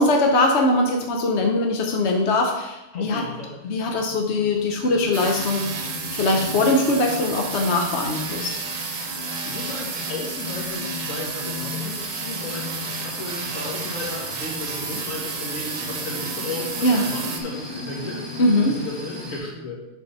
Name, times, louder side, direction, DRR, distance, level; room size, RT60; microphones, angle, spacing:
voice 1, 0.0-3.3 3.6-5.7 6.1-8.5 16.8-17.1 18.4-18.7, left 2 dB, 60° left, 2 dB, 1.1 m, -21 dB
voice 2, 2.9-3.5 9.2-19.8, left 2 dB, 85° left, -3 dB, 2.2 m, -34 dB
sound 1, 3.5-19.4, left 2 dB, 45° left, 2.4 m, -36 dB
sound 2, 5.1-17.4, right 5 dB, 85° right, 1.3 m, -32 dB
6.5 x 4.7 x 5.4 m, 0.97 s
omnidirectional pair, 1.3 m